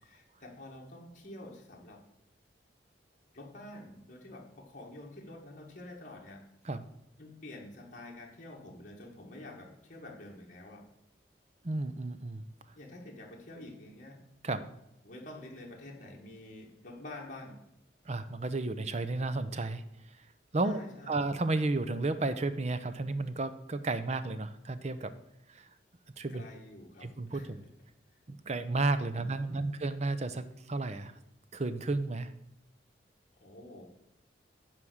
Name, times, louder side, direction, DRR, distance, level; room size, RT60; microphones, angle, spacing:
voice 1, 0.0-2.0 3.3-6.4 7.2-10.8 12.8-14.2 15.0-17.6 20.6-21.1 26.3-27.7 29.1-29.9 33.4-33.9, left 1 dB, 45° left, -2 dB, 2.1 m, -48 dB
voice 2, 11.6-12.4 14.4-14.7 18.1-19.8 20.5-20.8 21.1-25.1 25.5-25.7 26.2-26.5 27.0-27.6 28.3-31.1 31.5-32.3, right 2 dB, 40° right, 12 dB, 0.7 m, -32 dB
9.5 x 4.7 x 7.8 m, 0.82 s
head